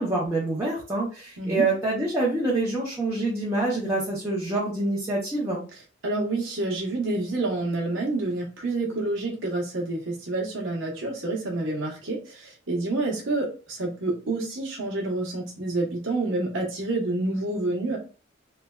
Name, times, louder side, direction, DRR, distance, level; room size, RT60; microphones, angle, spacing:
voice 1, 0.0-5.7, right 2 dB, 15° right, -7 dB, 0.6 m, -26 dB
voice 2, 1.4-1.7 6.0-18.0, right 2 dB, 80° right, -2 dB, 0.9 m, -28 dB
3.1 x 2.2 x 2.2 m, 0.35 s
head